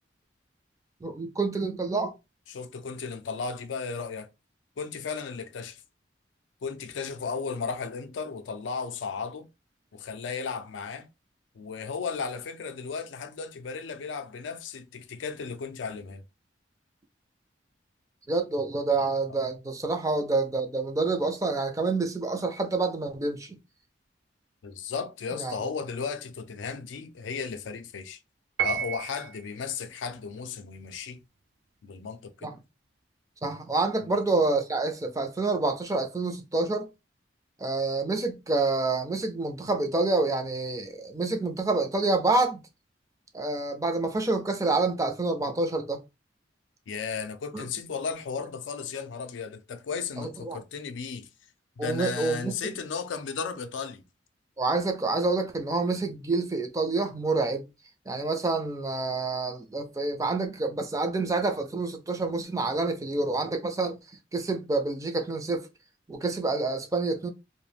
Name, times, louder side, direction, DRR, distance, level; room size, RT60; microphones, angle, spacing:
voice 1, 1.0-2.1 18.3-23.6 25.4-25.7 32.4-32.5 33.4-36.9 37.6-42.6 43.3-46.0 47.5-47.6 50.2-50.6 51.8-52.6 54.6-57.7 58.1-64.0 64.3-65.7 66.1-67.3, right 3 dB, 20° right, 0.4 m, -28 dB
voice 2, 2.5-4.3 4.8-5.8 6.6-9.5 9.9-11.1 11.6-16.2 24.6-28.2 28.6-31.2 31.8-32.6 34.0-34.2 46.9-51.3 51.8-54.0, left 5 dB, 85° left, 0.4 m, -35 dB
Piano, 28.6-29.5, right 9 dB, 90° right, 0.4 m, -30 dB
2.3 x 2.1 x 3.2 m
head